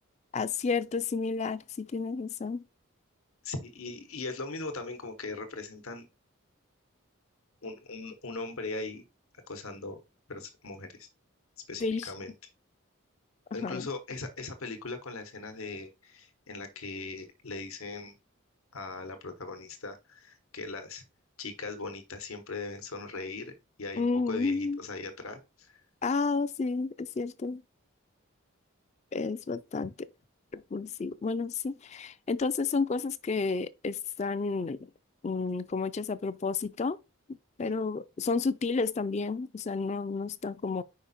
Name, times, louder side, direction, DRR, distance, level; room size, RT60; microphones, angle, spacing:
voice 1, 0.3-2.6 11.8-12.1 13.5-13.9 24.0-24.8 26.0-27.6 29.1-29.9 30.5-34.8 35.2-37.0 37.6-40.8, left 4 dB, 30° left, 0.3 m, -31 dB
voice 2, 3.4-6.1 7.6-9.0 9.5-10.0 10.3-11.1 11.7-12.3 13.5-18.1 18.7-21.0 21.4-25.8 37.6-37.8, left 3 dB, 90° left, 1.0 m, -39 dB
5.0 x 5.0 x 4.1 m
head